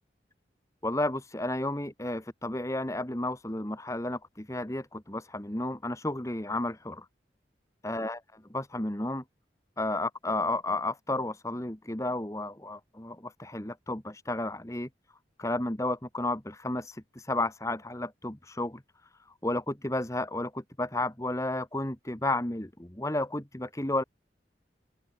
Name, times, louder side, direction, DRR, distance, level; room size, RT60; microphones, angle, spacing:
voice 1, 0.8-7.1 7.8-9.2 9.8-14.9 15.4-18.8 19.4-24.0, left 2 dB, 15° left, 1.6 m, -32 dB
open air
head